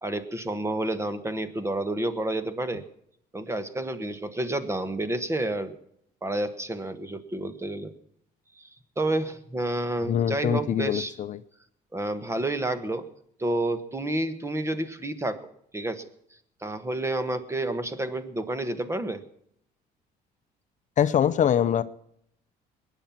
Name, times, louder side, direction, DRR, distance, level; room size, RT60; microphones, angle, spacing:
voice 1, 0.0-2.8 3.3-5.8 6.2-7.9 8.6-8.7 9.0-11.1 11.9-13.1 13.4-15.5 15.7-16.1 16.6-19.2, right 1 dB, 15° right, 12 dB, 1.3 m, -29 dB
voice 2, 10.1-11.4 21.0-21.8, left 9 dB, 45° left, 12 dB, 0.7 m, -23 dB
21.5 x 9.2 x 5.8 m, 0.72 s
cardioid pair, 110°, 17 cm